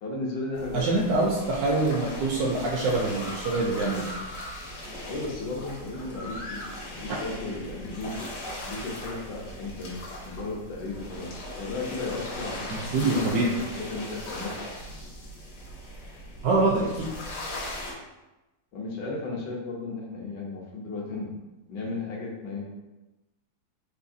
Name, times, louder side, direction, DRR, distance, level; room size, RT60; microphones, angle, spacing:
voice 1, 0.0-1.1 5.1-14.6 18.7-21.3 21.7-22.6, left 3 dB, 75° left, -2 dB, 1.3 m, -35 dB
sound 1, 0.5-17.9, left 1 dB, 50° left, 0.8 m, -39 dB
voice 2, 0.7-4.1 7.1-7.2 12.7-13.5 16.4-17.1, right 2 dB, 70° right, -2 dB, 0.9 m, -25 dB
4.0 x 2.7 x 2.6 m, 1.0 s
omnidirectional pair, 2.0 m